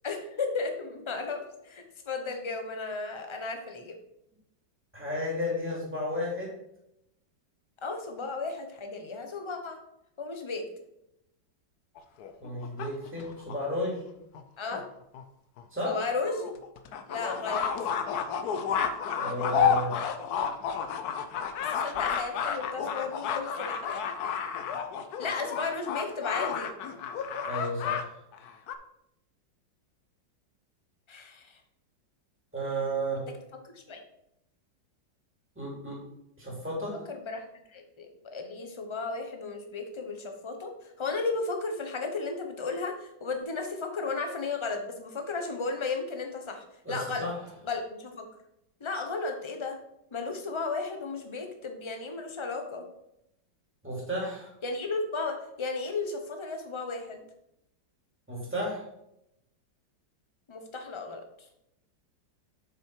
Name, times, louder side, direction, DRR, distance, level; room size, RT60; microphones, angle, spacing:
voice 1, 0.0-4.0 7.8-9.8 10.2-10.7 14.6-14.9 15.8-16.5 17.1-17.7 21.6-24.0 25.2-26.7 31.1-31.6 33.6-34.0 37.1-47.3 47.6-48.3 48.8-49.8 50.1-52.9 54.6-57.2 60.5-61.3, left 4 dB, 25° left, 5 dB, 0.7 m, -34 dB
voice 2, 4.9-6.5 12.4-14.0 15.7-15.9 19.1-19.9 27.4-28.1 32.5-33.2 35.6-36.0 36.4-37.0 46.8-47.3 53.8-54.5 58.3-58.8, equal, 5° right, -5 dB, 2.9 m, -33 dB
sound 1, 12.0-13.6 14.3-14.4 14.7-14.8 15.1-15.2 15.6-15.7 16.2-28.0 28.3-28.7, left 7 dB, 65° left, 1.1 m, -31 dB
7.5 x 6.2 x 4.8 m, 0.82 s
omnidirectional pair, 2.0 m